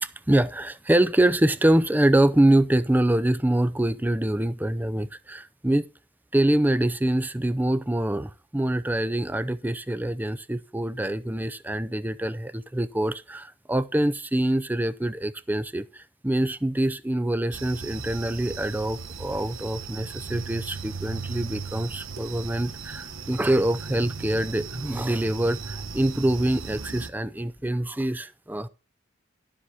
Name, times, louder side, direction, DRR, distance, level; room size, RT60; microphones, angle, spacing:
voice 1, 0.0-5.9 6.3-28.7, right 1 dB, 10° right, 0.5 m, -25 dB
sound 1, 17.5-27.1, right 5 dB, 90° right, 1.1 m, -37 dB
sound 2, 19.9-27.8, left 1 dB, 10° left, 0.9 m, -52 dB
12.0 x 7.8 x 4.1 m
head